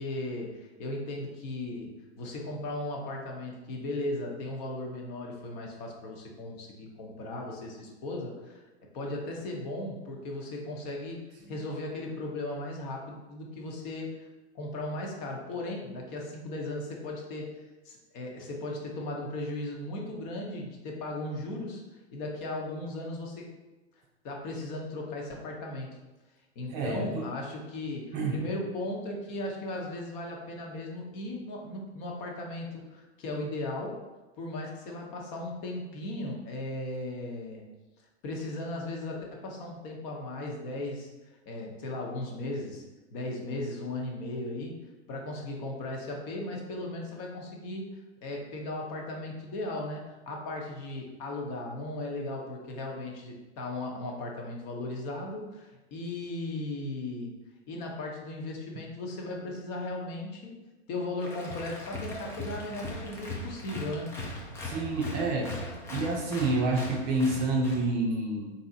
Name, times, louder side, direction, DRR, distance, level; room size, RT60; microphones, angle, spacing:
voice 1, 0.0-8.6 8.9-11.2 11.5-14.3 14.5-17.5 17.8-21.8 22.1-23.5 24.2-26.0 26.6-34.0 34.4-37.6 38.2-41.1 41.5-42.8 43.1-44.8 45.1-47.9 48.2-57.3 57.7-60.5 60.9-64.1, left 2 dB, 40° left, 0 dB, 0.9 m, -36 dB
voice 2, 26.7-27.3 28.1-28.4 64.6-65.6 65.9-68.5, right 2 dB, 30° right, 0 dB, 0.6 m, -28 dB
Applause, 61.2-67.9, left 1 dB, 10° left, 0.4 m, -39 dB
3.9 x 2.8 x 3.9 m, 1.1 s
hypercardioid pair, 115°, 35 cm